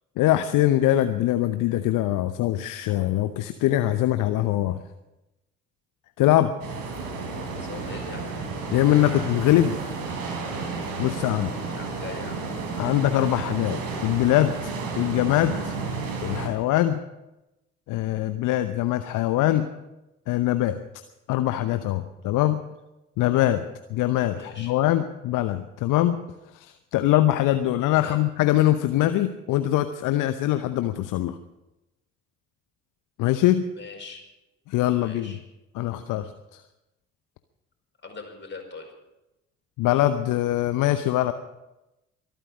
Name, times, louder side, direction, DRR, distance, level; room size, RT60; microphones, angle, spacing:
voice 1, 0.2-4.8 6.2-6.5 8.7-10.0 11.0-11.5 12.8-14.7 15.0-15.8 16.2-17.0 17.9-19.7 20.3-20.8 21.3-22.6 23.2-23.6 23.9-26.2 26.5-31.4 33.2-33.6 34.7-35.3 35.7-36.6 39.8-41.3, left 14 dB, 55° left, 11 dB, 0.9 m, -23 dB
sound 1, 6.6-16.5, right 4 dB, 65° right, 3.6 m, -32 dB
voice 2, 7.5-8.5 9.0-9.2 11.7-12.4 19.4-19.6 24.3-24.7 27.9-28.2 33.7-34.2 35.0-35.4 38.0-38.9, left 4 dB, 30° left, 3 dB, 4.9 m, -41 dB
23.5 x 9.2 x 6.2 m, 0.96 s
figure-of-eight pair, 40°, 37 cm